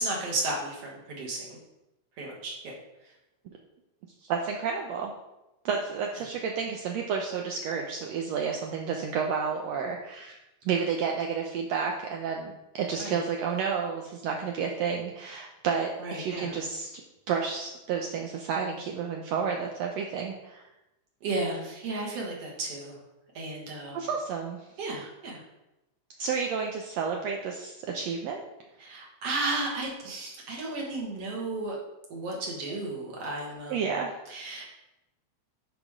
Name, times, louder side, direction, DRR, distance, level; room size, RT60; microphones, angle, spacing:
voice 1, 0.0-1.6 2.2-2.7 13.0-13.2 16.0-16.5 21.2-23.0 23.3-24.1 24.8-25.4 28.8-31.8 32.1-34.0 34.3-34.7, right 2 dB, 55° right, -1 dB, 2.5 m, -33 dB
voice 2, 4.2-5.1 5.7-10.4 10.7-17.0 17.3-20.6 23.9-24.6 26.2-28.4 33.7-34.2, right 6 dB, 75° right, 1 dB, 1.7 m, -31 dB
10.0 x 5.1 x 3.7 m, 0.94 s
omnidirectional pair, 3.4 m